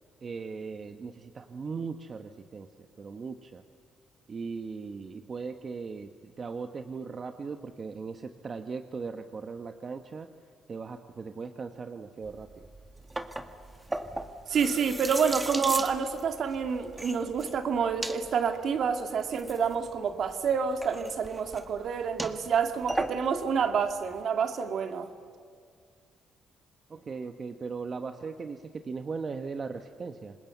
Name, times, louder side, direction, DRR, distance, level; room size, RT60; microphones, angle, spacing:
voice 1, 0.2-3.6 4.3-10.3 10.7-12.5 26.9-30.4, right 5 dB, 40° right, 7 dB, 1.2 m, -38 dB
sound 1, 12.2-24.2, right 1 dB, 15° right, 1.8 m, -38 dB
voice 2, 14.5-25.1, right 6 dB, 60° right, 7 dB, 2.1 m, -28 dB
26.5 x 21.0 x 8.0 m, 2.2 s
cardioid pair, 90°, 0 cm